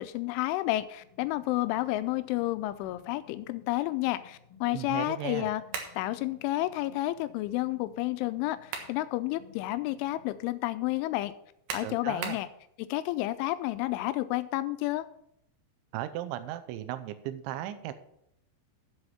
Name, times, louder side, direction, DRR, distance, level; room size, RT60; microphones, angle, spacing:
voice 1, 0.0-5.6 6.0-11.3 11.7-12.5 12.8-15.1, left 16 dB, 85° left, 13 dB, 3.1 m, -30 dB
sound 1, 1.0-10.4, left 7 dB, 35° left, 2.2 m, -58 dB
voice 2, 4.7-5.5 11.8-12.4 15.9-17.9, right 13 dB, 80° right, 11 dB, 3.0 m, -36 dB
sound 2, 5.7-6.0 8.4-9.0 9.5-9.6 11.7-12.5, right 6 dB, 65° right, 2.4 m, -37 dB
8.1 x 7.8 x 7.2 m, 0.76 s
omnidirectional pair, 5.5 m